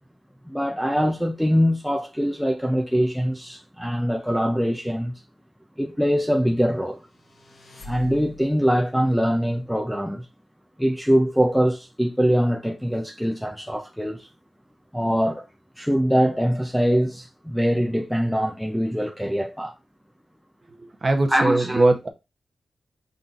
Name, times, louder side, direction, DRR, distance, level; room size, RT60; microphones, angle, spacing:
voice 1, 0.5-5.1 5.8-7.0 7.8-10.3 10.8-14.3 14.9-15.5 15.8-19.7 21.3-21.9, equal, ahead, 0.4 m, -23 dB
sound 1, 7.0-8.7, left 2 dB, 55° left, 1.4 m, -44 dB
voice 2, 21.0-22.1, right 2 dB, 30° right, 0.8 m, -20 dB
5.5 x 3.9 x 2.4 m
wide cardioid pair, 170°, 0 cm